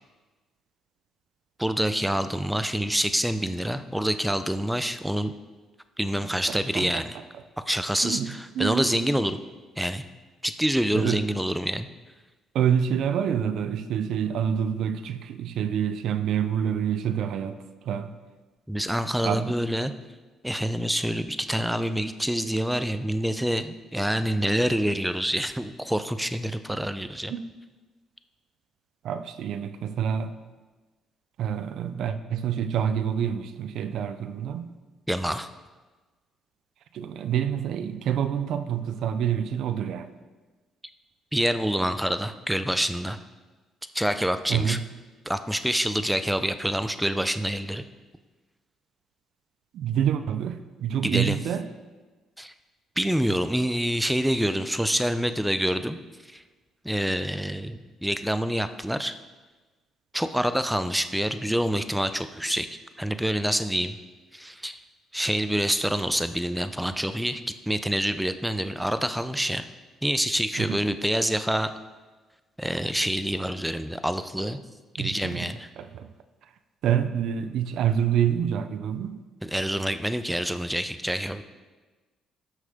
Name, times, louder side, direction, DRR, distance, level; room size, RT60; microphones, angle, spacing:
voice 1, 1.6-5.3 6.0-7.1 7.6-9.4 9.8-10.0 10.4-11.9 18.7-19.9 20.4-27.3 35.1-35.5 41.3-43.2 43.9-44.8 45.3-47.8 51.0-51.4 52.4-52.5 53.0-56.0 56.2-56.4 56.8-59.1 60.1-62.7 63.0-64.0 64.3-64.8 65.1-69.7 70.0-71.7 72.6-74.6 75.0-75.7 79.4-81.4, equal, 5° right, 11 dB, 0.6 m, -26 dB
voice 2, 6.2-7.0 8.0-9.1 10.9-11.2 12.5-18.1 19.2-19.5 27.3-27.5 29.0-30.4 31.4-34.7 36.9-40.1 44.5-44.8 49.7-51.7 70.6-70.8 75.0-75.5 75.8-76.1 76.8-79.2, right 8 dB, 70° right, 10 dB, 0.5 m, -27 dB
13.0 x 6.4 x 3.6 m, 1.3 s
supercardioid pair, 65°, 0 cm